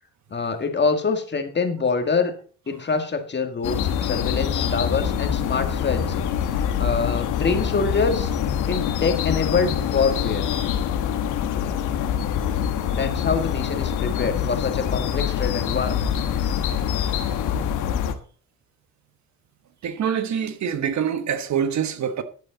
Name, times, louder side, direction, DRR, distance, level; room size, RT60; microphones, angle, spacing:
voice 1, 0.3-2.3 2.7-8.3 8.7-10.5 12.9-16.1, left 4 dB, 35° left, 1.9 m, -25 dB
sound 1, 3.6-18.1, left 9 dB, 90° left, 1.3 m, -25 dB
voice 2, 19.8-22.2, right 8 dB, 65° right, 1.3 m, -25 dB
11.5 x 8.5 x 4.0 m
cardioid pair, 90°, 30 cm